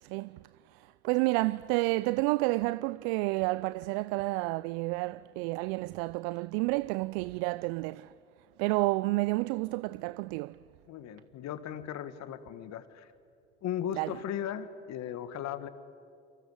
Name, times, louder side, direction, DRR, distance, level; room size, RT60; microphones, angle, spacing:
voice 1, 0.0-0.4 0.7-8.1 8.6-10.6 13.9-14.2, right 22 dB, 65° right, 0.6 m, -30 dB
voice 2, 10.9-13.1 13.6-15.7, left 10 dB, 50° left, 1.9 m, -37 dB
29.5 x 24.0 x 8.2 m
hypercardioid pair, 65°, 34 cm